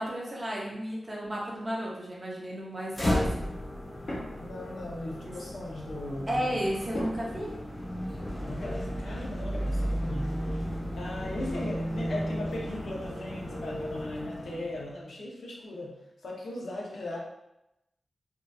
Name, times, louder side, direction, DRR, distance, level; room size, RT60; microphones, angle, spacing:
voice 1, 0.0-3.3 5.2-5.4 6.3-7.5, equal, 30° right, -4 dB, 0.6 m, -33 dB
sound 1, 1.2-1.4 4.0-4.7 5.3-5.5 6.9-7.9 8.2-8.4 10.7-11.0 11.3-11.9, left 1 dB, 55° left, 0.9 m, -41 dB
sound 2, 2.9-14.9, equal, 20° left, 0.5 m, -34 dB
voice 2, 4.4-6.6 8.4-10.7 11.0-16.0 16.2-17.2, left 1 dB, 80° left, -3 dB, 0.5 m, -38 dB
2.7 x 2.2 x 2.3 m, 0.90 s
wide cardioid pair, 150°, 0 cm